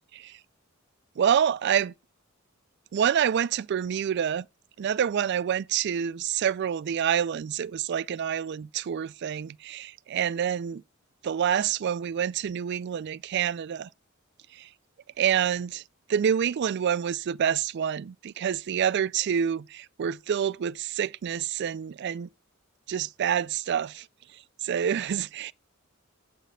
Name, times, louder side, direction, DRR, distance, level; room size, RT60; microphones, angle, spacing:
voice 1, 1.2-1.9 2.9-4.4 4.8-10.8 11.2-13.9 14.5-14.7 15.2-15.8 16.1-22.3 22.9-24.0 24.6-25.5, right 8 dB, 55° right, 0.3 m, -27 dB
8.3 x 4.1 x 6.7 m
head